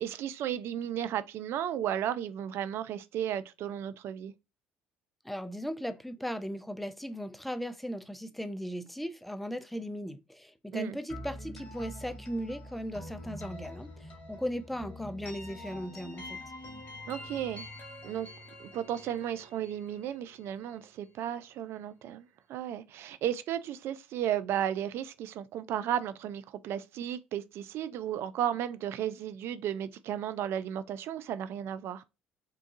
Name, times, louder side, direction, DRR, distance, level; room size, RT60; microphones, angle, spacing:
voice 1, 0.0-4.3 10.7-11.0 17.1-17.7 18.0-18.3 18.6-32.0, right 10 dB, 55° right, 0.4 m, -34 dB
voice 2, 5.2-16.4, equal, ahead, 0.4 m, -37 dB
sound 1, 11.1-20.9, left 1 dB, 45° left, 1.9 m, -46 dB
3.9 x 2.3 x 2.6 m
hypercardioid pair, 60°, 5 cm